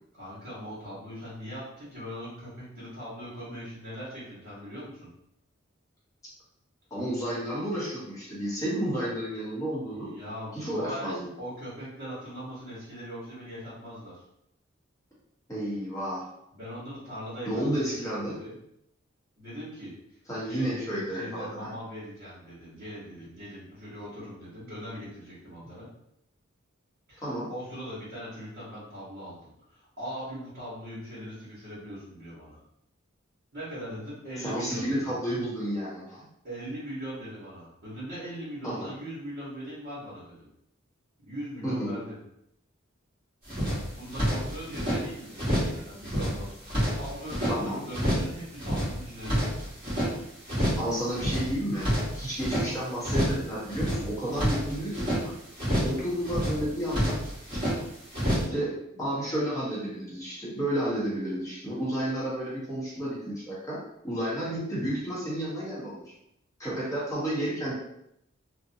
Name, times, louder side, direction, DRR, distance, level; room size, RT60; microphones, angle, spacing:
voice 1, 0.1-5.1 9.9-14.2 16.5-18.6 19.4-19.9 20.4-25.9 27.1-32.6 33.5-35.1 36.4-40.5 41.2-42.2 43.5-46.5 46.9-49.6, equal, 50° right, -12 dB, 1.1 m, -40 dB
voice 2, 6.9-10.1 10.5-11.3 15.5-16.3 17.5-18.4 20.3-21.7 27.2-27.5 34.4-36.2 38.6-38.9 41.6-42.0 47.5-47.8 50.5-55.3 55.8-57.2 57.5-57.6 58.5-66.1 66.6-67.7, right 1 dB, 15° left, -7 dB, 0.9 m, -31 dB
sound 1, 43.5-45.0 45.4-45.8 46.0-47.6 47.9-48.3 48.6-50.1 50.5-50.9 51.1-52.7 53.0-53.4 53.7-55.2 55.6-56.0 56.2-57.8 58.1-58.4, equal, 25° right, 1.2 m, -28 dB
2.6 x 2.1 x 2.6 m, 0.78 s
head